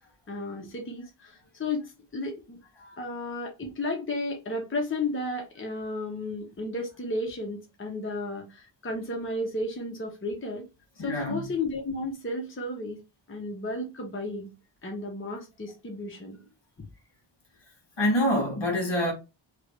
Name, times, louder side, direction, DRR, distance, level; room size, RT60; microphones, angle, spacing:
voice 1, 0.3-2.6 3.0-10.7 11.0-13.0 13.3-14.5 14.8-16.4 16.8-16.9, left 2 dB, 25° left, 0.8 m, -33 dB
voice 2, 11.0-11.5 18.0-19.1, left 1 dB, 60° left, 1.5 m, -26 dB
3.2 x 2.4 x 3.1 m
wide cardioid pair, 95°, 48 cm